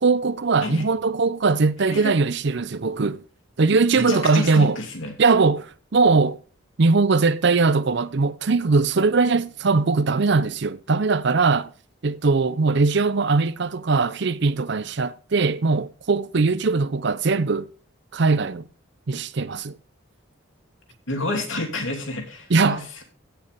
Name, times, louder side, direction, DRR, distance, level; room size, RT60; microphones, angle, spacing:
voice 1, 0.0-3.2 3.6-4.8 5.2-6.4 6.8-11.7 12.0-17.7 18.1-18.6 19.1-19.8 22.5-22.8, right 4 dB, 55° right, 0.6 m, -20 dB
voice 2, 3.9-5.1 21.1-23.0, left 2 dB, 75° left, 2.9 m, -29 dB
16.0 x 6.7 x 3.6 m
head